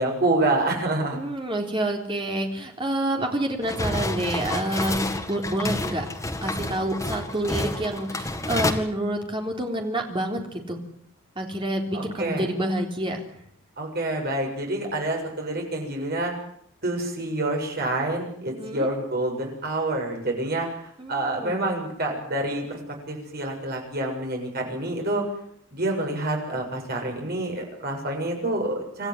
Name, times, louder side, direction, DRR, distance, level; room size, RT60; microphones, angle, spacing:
voice 1, 0.0-1.2 11.9-12.5 13.8-16.3 16.8-20.7 21.1-22.8 23.1-25.2 25.7-29.1, right 2 dB, 50° right, 1 dB, 7.3 m, -27 dB
voice 2, 1.1-6.1 6.4-10.8 11.4-13.2 18.6-18.9 21.0-21.6, right 1 dB, 25° right, 2 dB, 3.8 m, -28 dB
sound 1, 3.6-8.7, left 2 dB, 15° left, 2.1 m, -29 dB
27.0 x 14.0 x 9.5 m, 0.70 s
head